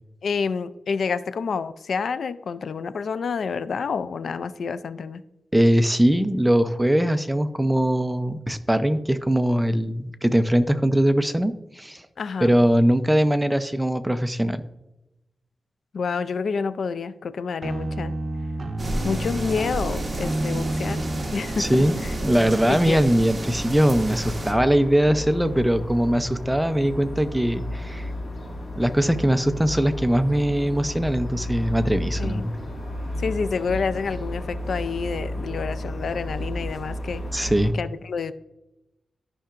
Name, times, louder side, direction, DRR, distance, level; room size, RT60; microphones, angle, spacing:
voice 1, 0.2-5.2 12.2-12.5 15.9-18.1 19.0-21.0 21.3-22.1 22.7-23.0 32.2-32.4 33.2-37.2 37.7-38.3, left 5 dB, 75° left, 14 dB, 0.4 m, -28 dB
voice 2, 5.5-12.0 12.4-14.6 21.6-21.9 22.2-28.1 28.8-32.5 37.3-37.7, equal, 5° right, 10 dB, 0.6 m, -21 dB
sound 1, 17.6-22.8, right 1 dB, 50° right, 0.9 m, -31 dB
sound 2, 18.8-24.5, right 1 dB, 25° right, 1.8 m, -31 dB
sound 3, 23.4-37.7, left 1 dB, 35° left, 1.9 m, -33 dB
13.0 x 5.6 x 2.5 m, 0.94 s
wide cardioid pair, 100°, 0 cm